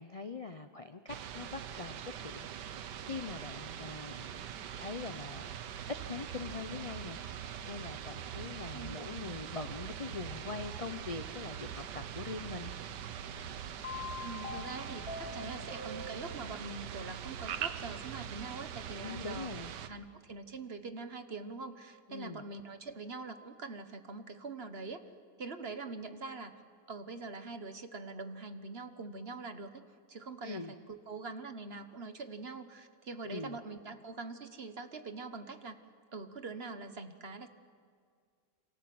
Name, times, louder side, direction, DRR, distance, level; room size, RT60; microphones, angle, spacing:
voice 1, 0.0-4.4 4.8-5.5 5.9-12.7 19.0-19.7 22.1-22.4 30.4-30.7 33.2-33.6, left 4 dB, 55° left, 9 dB, 0.3 m, -43 dB
sound 1, 1.1-19.9, right 9 dB, 80° right, 1.6 m, -42 dB
sound 2, 13.8-16.7, left 3 dB, 15° left, 2.7 m, -44 dB
voice 2, 14.2-19.5 19.9-25.0 25.4-26.5 26.9-35.8 36.1-37.5, right 3 dB, 40° right, 9 dB, 1.3 m, -44 dB
28.5 x 25.0 x 7.8 m, 2.1 s
omnidirectional pair, 1.9 m